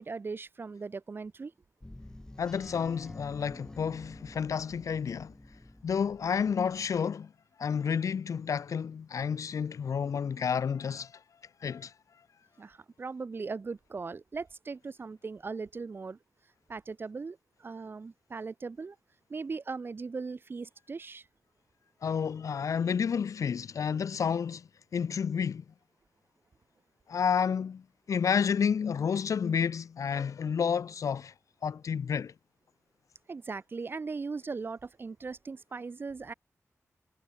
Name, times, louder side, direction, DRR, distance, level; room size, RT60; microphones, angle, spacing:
voice 1, 0.0-1.5 12.6-16.2 16.7-19.0 19.3-21.3 33.3-36.3, right 4 dB, 40° right, 2.8 m, -39 dB
sound 1, 1.8-7.0, left 1 dB, 10° left, 5.5 m, -49 dB
voice 2, 2.4-5.3 5.8-7.3 7.6-11.1 11.6-11.9 22.0-25.6 27.1-31.3 31.6-32.3, left 7 dB, 80° left, 0.9 m, -30 dB
wide cardioid pair, 170°, 6 cm